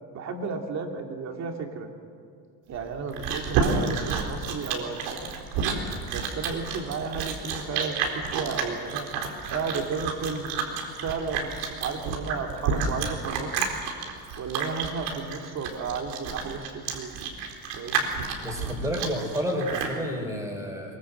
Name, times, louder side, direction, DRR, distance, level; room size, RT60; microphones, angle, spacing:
voice 1, 0.1-1.9 2.7-5.3 6.1-9.1 9.5-10.5 11.0-13.7 14.4-17.2 17.8-18.1, right 5 dB, 40° right, 3 dB, 3.0 m, -33 dB
Chewing mastication, 2.7-20.0, right 5 dB, 85° right, 4.3 m, -30 dB
voice 2, 18.4-21.0, equal, 5° right, 3 dB, 4.2 m, -30 dB
23.0 x 23.0 x 8.0 m, 2.3 s
cardioid pair, 165°, 42 cm